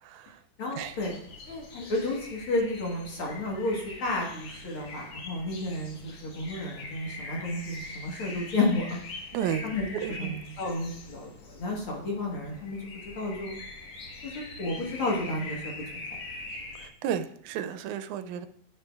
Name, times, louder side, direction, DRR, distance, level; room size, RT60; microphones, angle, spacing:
voice 1, 0.0-0.4 0.8-1.0 9.3-9.7 9.9-10.4 16.8-18.5, right 9 dB, 85° right, 10 dB, 2.0 m, -33 dB
voice 2, 0.6-1.2 1.5-9.0 9.6-9.9 10.2-12.9 13.2-13.6 14.3-16.1, left 2 dB, 50° left, -2 dB, 2.0 m, -32 dB
sound 1, 0.8-16.9, left 3 dB, 85° left, 2.9 m, -43 dB
10.5 x 6.7 x 2.3 m, 0.65 s
omnidirectional pair, 3.4 m